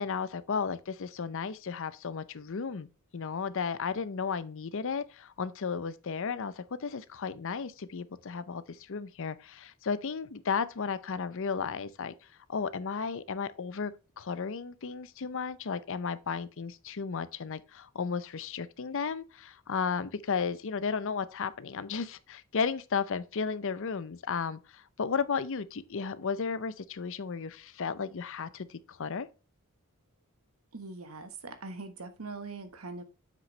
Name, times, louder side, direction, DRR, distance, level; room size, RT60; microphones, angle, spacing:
voice 1, 0.0-2.9 3.1-12.1 12.5-29.3, left 5 dB, 60° left, 0.6 m, -34 dB
voice 2, 30.7-33.0, right 3 dB, 75° right, 1.3 m, -42 dB
7.6 x 6.2 x 3.2 m
head